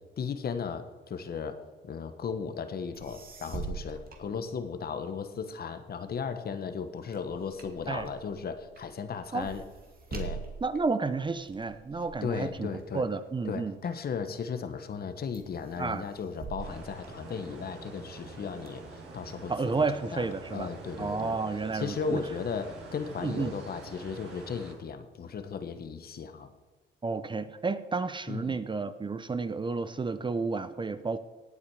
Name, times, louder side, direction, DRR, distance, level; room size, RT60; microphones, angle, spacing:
voice 1, 0.2-9.6 10.1-10.4 12.2-13.0 13.4-19.8 20.1-21.4 21.7-26.5 28.3-28.6, left 6 dB, 50° left, 10 dB, 1.3 m, -36 dB
sound 1, 2.9-5.1 5.5-14.2 14.7-15.1 15.3-17.8 18.3-19.3, right 5 dB, 50° right, 2.4 m, -45 dB
voice 2, 10.6-12.7 12.9-13.8 15.8-16.0 19.5-22.2 23.2-23.5 27.0-31.2, right 4 dB, 25° right, 12 dB, 0.7 m, -31 dB
sound 2, 16.6-24.7, right 3 dB, 65° right, 4.7 m, -46 dB
18.0 x 8.6 x 4.8 m, 1.3 s
cardioid pair, 90°, 20 cm